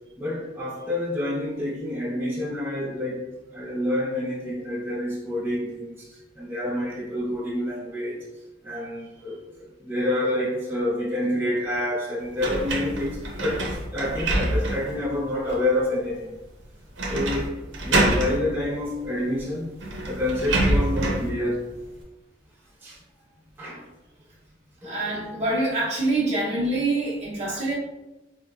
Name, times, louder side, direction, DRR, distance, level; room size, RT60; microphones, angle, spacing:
voice 1, 0.2-8.2 8.6-16.3 17.1-17.5 17.8-19.7 20.1-21.6 22.8-23.0 23.6-23.8 24.8-25.3 27.5-27.6, left 1 dB, 10° right, -8 dB, 0.9 m, -28 dB
sound 1, 12.4-15.0 15.5-15.6 17.0-17.5 17.7-18.4 19.4-19.5 19.8-21.3, right 1 dB, 90° right, 0.7 m, -25 dB
voice 2, 24.8-27.7, right 2 dB, 40° right, -7 dB, 0.8 m, -25 dB
4.6 x 2.1 x 2.3 m, 1.0 s
head